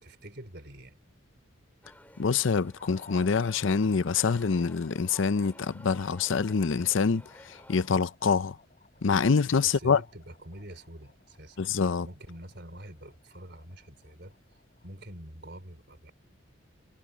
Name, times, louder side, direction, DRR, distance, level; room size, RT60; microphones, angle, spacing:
voice 1, 0.0-1.0 9.6-11.6 12.0-14.4 14.8-16.1, right 1 dB, 55° right, 4.6 m, -46 dB
sound 1, 1.8-7.9, left 1 dB, 10° left, 2.7 m, -53 dB
voice 2, 2.2-8.6 9.0-10.0 11.6-12.1, left 5 dB, 70° left, 0.6 m, -26 dB
sound 2, 2.7-15.0, left 3 dB, 35° left, 4.6 m, -59 dB
head